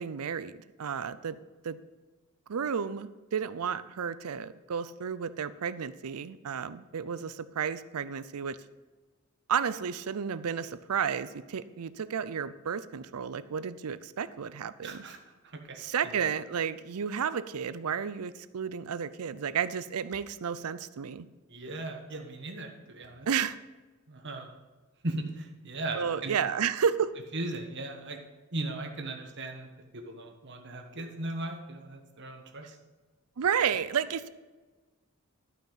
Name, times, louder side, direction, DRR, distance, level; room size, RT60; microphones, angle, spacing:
voice 1, 0.0-1.4 1.6-1.8 2.5-8.6 9.5-15.0 15.8-21.3 23.3-23.6 25.9-27.1 33.4-34.3, right 7 dB, 90° right, 15 dB, 0.5 m, -32 dB
voice 2, 14.8-15.2 15.4-15.8 16.0-16.2 21.5-23.3 24.1-24.5 25.0-26.4 27.3-28.2 28.5-32.8, right 2 dB, 55° right, 3 dB, 1.3 m, -38 dB
12.0 x 5.7 x 5.6 m, 1.3 s
head